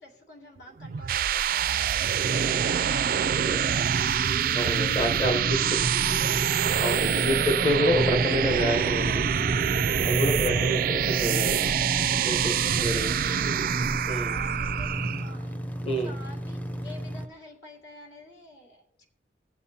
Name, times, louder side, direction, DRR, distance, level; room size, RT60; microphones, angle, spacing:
voice 1, 0.0-4.9 5.3-6.7 7.1-7.7 10.3-10.5 12.7-13.9 14.3-15.6 16.0-19.1, left 1 dB, 75° left, 0 dB, 2.4 m, -49 dB
sound 1, 0.8-15.3, right 8 dB, 50° right, 0.3 m, -25 dB
voice 2, 4.5-5.8 6.8-9.3 10.0-11.7 12.2-13.1 14.1-14.3 15.8-16.1, equal, 30° left, 3 dB, 0.9 m, -28 dB
sound 2, 5.2-17.3, equal, 10° left, 0.5 m, -35 dB
19.0 x 7.1 x 2.8 m, 0.82 s
head